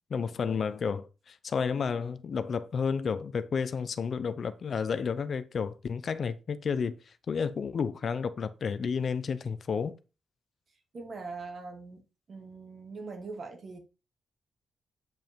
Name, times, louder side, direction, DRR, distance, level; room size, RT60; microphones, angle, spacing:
voice 1, 0.1-9.9, left 6 dB, 45° left, 0.7 m, -31 dB
voice 2, 10.9-12.0 12.3-13.8, right 4 dB, 45° right, 2.4 m, -41 dB
9.2 x 5.4 x 4.6 m
wide cardioid pair, 160°, 0 cm